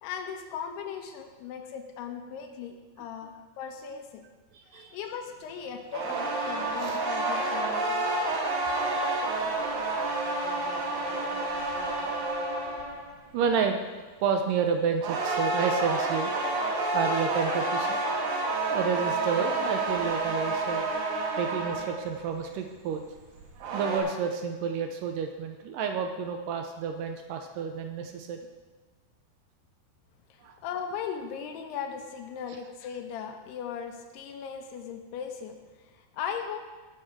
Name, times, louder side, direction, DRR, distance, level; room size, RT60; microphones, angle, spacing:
voice 1, 0.0-4.2 4.7-8.4 30.3-36.6, left 7 dB, 85° left, 4 dB, 3.1 m, -38 dB
voice 2, 3.0-3.3 4.5-5.0 6.8-7.0 13.3-16.3 16.9-18.0 18.7-20.9 21.4-23.0 23.6-28.4 30.4-30.6, right 6 dB, 80° right, 5 dB, 1.9 m, -30 dB
sound 1, 5.9-13.1 15.0-22.1 23.4-24.0, right 2 dB, 65° right, 3.2 m, -29 dB
16.0 x 6.6 x 4.6 m, 1.3 s
omnidirectional pair, 4.6 m